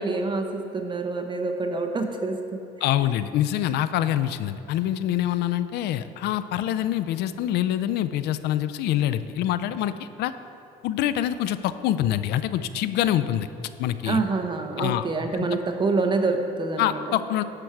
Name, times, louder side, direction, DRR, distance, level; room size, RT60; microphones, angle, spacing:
voice 1, 0.0-2.6 14.0-17.1, right 3 dB, 25° right, 5 dB, 0.9 m, -26 dB
voice 2, 2.8-10.3 10.8-13.5 13.8-14.2 14.8-15.0 15.3-15.6 16.8-17.4, left 12 dB, 80° left, 13 dB, 0.4 m, -25 dB
11.5 x 4.6 x 5.9 m, 2.7 s
cardioid pair, 110°, 17 cm